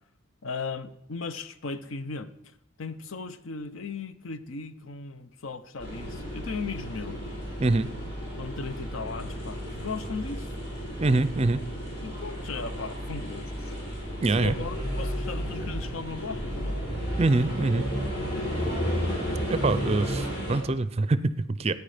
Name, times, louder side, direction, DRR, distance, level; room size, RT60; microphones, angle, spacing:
voice 1, 0.4-2.3 2.8-7.2 8.4-10.5 12.0-13.8 14.3-16.8, left 4 dB, 70° left, 12 dB, 0.7 m, -37 dB
sound 1, 5.8-20.6, equal, 55° left, 4.6 m, -33 dB
voice 2, 11.0-11.6 14.2-14.5 17.2-17.9 19.5-21.7, right 2 dB, 30° right, 15 dB, 0.4 m, -24 dB
14.5 x 9.4 x 5.0 m, 0.77 s
head